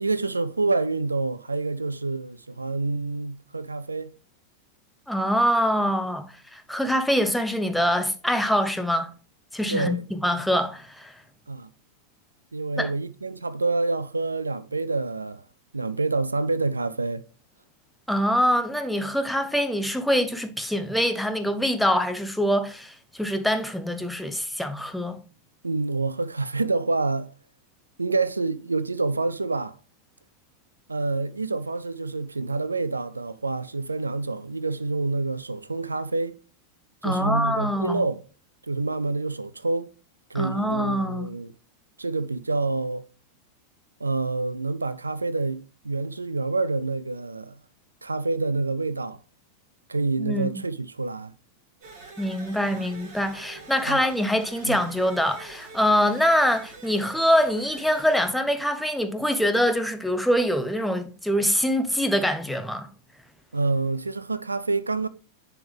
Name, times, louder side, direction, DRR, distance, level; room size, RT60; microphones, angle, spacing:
voice 1, 0.0-4.1 9.7-10.0 11.5-11.7 12.5-15.4 15.7-17.2 25.6-27.3 28.0-29.8 30.9-36.4 37.0-38.2 38.7-39.9 40.3-41.5 42.0-43.0 44.0-47.6 48.0-49.2 49.9-51.3 52.7-52.9 53.9-54.0 54.7-54.8 63.5-65.1, right 3 dB, 80° right, 0.3 m, -27 dB
voice 2, 5.1-9.1 9.5-11.1 12.8-12.9 18.1-25.2 37.0-38.0 40.3-41.3 50.2-50.6 52.2-62.9, equal, ahead, 0.7 m, -24 dB
sound 1, 51.8-58.3, right 3 dB, 40° right, 2.9 m, -45 dB
10.0 x 3.5 x 3.4 m
figure-of-eight pair, 90°, 0 cm